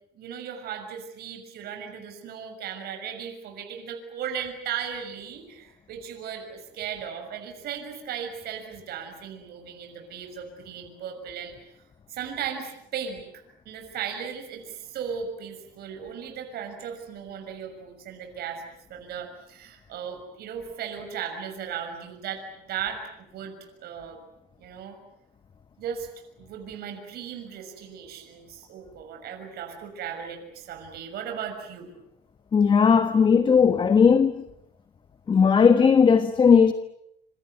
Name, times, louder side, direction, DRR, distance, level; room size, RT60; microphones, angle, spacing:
voice 1, 0.1-11.5 12.1-18.6 18.9-23.5 23.8-24.2 24.6-25.0 25.8-26.1 26.4-31.9, right 8 dB, 55° right, 6.4 m, -36 dB
voice 2, 32.5-34.4 35.3-36.7, left 6 dB, 25° left, 1.3 m, -17 dB
27.0 x 27.0 x 8.0 m
cardioid pair, 140°, 19 cm